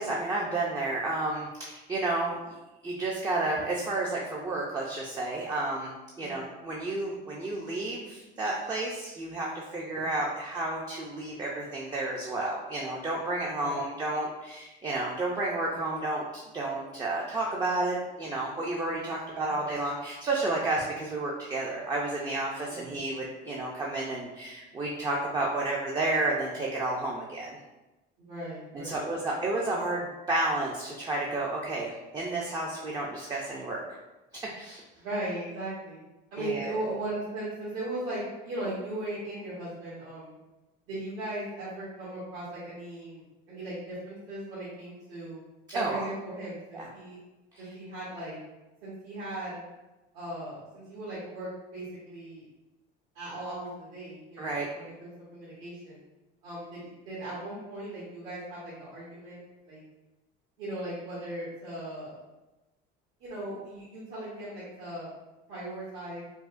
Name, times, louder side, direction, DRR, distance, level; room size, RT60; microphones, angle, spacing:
voice 1, 0.0-2.6 2.8-5.9 6.2-27.6 28.8-33.8 34.3-34.8 36.4-36.7 45.7-46.0 46.7-46.9 47.5-47.7 54.4-54.7, right 2 dB, 20° right, -3 dB, 0.4 m, -31 dB
voice 2, 18.9-19.7 22.7-23.0 28.2-29.0 35.0-36.0 36.3-40.4 40.9-45.4 45.7-47.2 47.6-48.4 48.8-49.6 50.1-52.4 53.1-56.0 56.4-59.4 59.7-59.8 60.6-62.2 63.2-65.1 65.5-66.2, right 1 dB, 75° right, -11 dB, 1.4 m, -38 dB
4.6 x 2.1 x 2.5 m, 1.1 s
cardioid pair, 140°, 21 cm